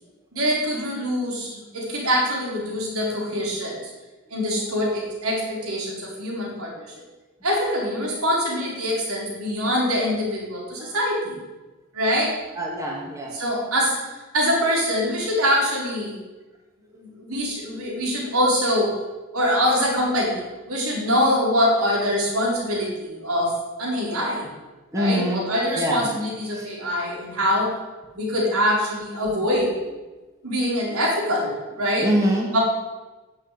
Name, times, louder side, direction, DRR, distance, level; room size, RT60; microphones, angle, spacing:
voice 1, 0.3-3.8 4.3-6.9 7.4-11.4 11.9-12.3 13.3-14.0 14.3-16.2 17.0-18.9 19.3-20.4 20.7-24.5 24.9-27.7 28.2-29.8 30.4-32.1 32.5-32.6, equal, 75° right, -2 dB, 4.3 m, -24 dB
voice 2, 12.6-13.3 24.9-25.4 25.8-26.1 26.5-26.7 32.0-32.6, equal, 15° right, -2 dB, 1.9 m, -24 dB
11.5 x 7.0 x 9.3 m, 1.2 s
head